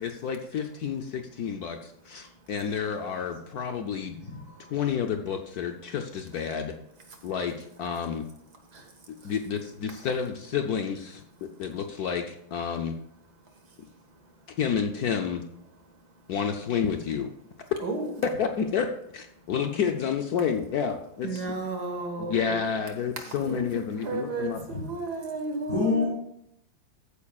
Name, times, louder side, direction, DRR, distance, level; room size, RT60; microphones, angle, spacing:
voice 1, 0.0-4.2 4.7-6.7 7.2-8.3 9.2-13.0 14.6-15.4 16.3-17.3 18.4-21.4 22.3-24.6, left 7 dB, 65° left, 5 dB, 1.0 m, -30 dB
voice 2, 2.1-2.8 4.5-4.7 6.4-6.5 7.1-7.3 8.5-9.3 11.4-11.7 13.2-14.6 15.7-16.3 17.8-18.2 19.3-19.5 21.2-22.6 23.2-26.1, right 3 dB, 55° right, 3 dB, 2.0 m, -36 dB
voice 3, 4.2-4.6 24.7-24.8 25.7-26.1, left 4 dB, 40° left, -5 dB, 2.8 m, -27 dB
14.0 x 9.3 x 2.4 m, 0.76 s
omnidirectional pair, 2.1 m